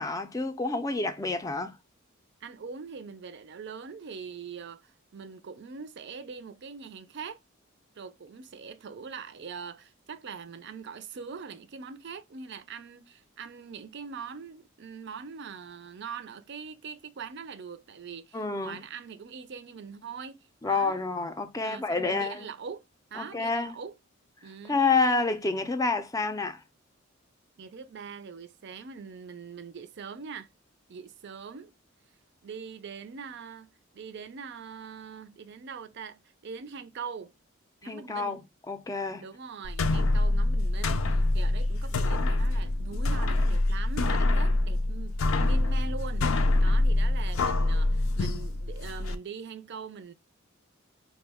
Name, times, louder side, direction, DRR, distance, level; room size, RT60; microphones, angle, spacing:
voice 1, 0.0-1.7 18.3-18.8 20.6-22.5 23.2-23.7 24.7-26.6 37.8-39.2, left 3 dB, 15° left, 0.4 m, -28 dB
voice 2, 2.4-7.4 8.0-21.1 21.6-24.0 24.4-24.8 27.6-30.5 30.9-31.7 32.4-37.3 37.8-38.4 39.2-50.1, right 6 dB, 55° right, 0.5 m, -42 dB
sound 1, 39.6-49.1, left 2 dB, 70° left, 0.4 m, -25 dB
4.5 x 2.2 x 3.4 m
head